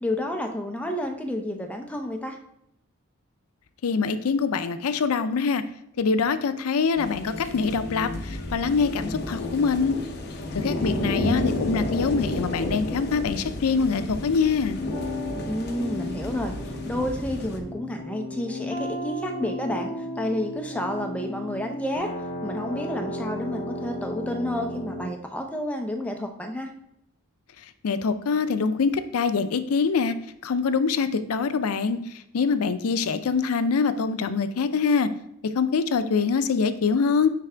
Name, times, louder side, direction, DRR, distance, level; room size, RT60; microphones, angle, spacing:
voice 1, 0.0-2.4 10.7-11.6 15.4-22.1 22.4-26.7, left 1 dB, 5° left, 3 dB, 0.6 m, -30 dB
voice 2, 3.8-5.6 6.0-9.9 10.5-14.8 27.8-30.1 30.4-32.0 32.3-35.1 35.6-37.3, left 5 dB, 80° left, 11 dB, 0.5 m, -24 dB
sound 1, 7.0-17.6, left 1 dB, 50° left, 0.7 m, -31 dB
sound 2, 14.9-25.1, left 1 dB, 25° left, 1.5 m, -34 dB
9.3 x 3.3 x 3.4 m, 0.76 s
head